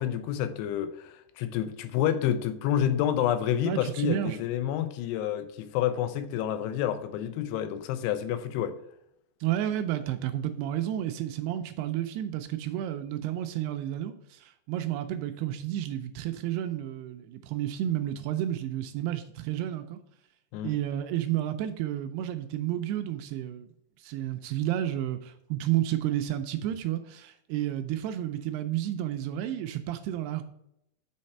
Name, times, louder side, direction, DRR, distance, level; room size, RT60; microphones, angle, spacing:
voice 1, 0.0-8.8 20.5-20.7, left 10 dB, 85° left, 2.6 m, -29 dB
voice 2, 3.7-4.4 9.4-20.0 20.6-23.7 24.0-30.4, right 12 dB, 80° right, 2.5 m, -31 dB
6.4 x 4.2 x 5.4 m
omnidirectional pair, 4.9 m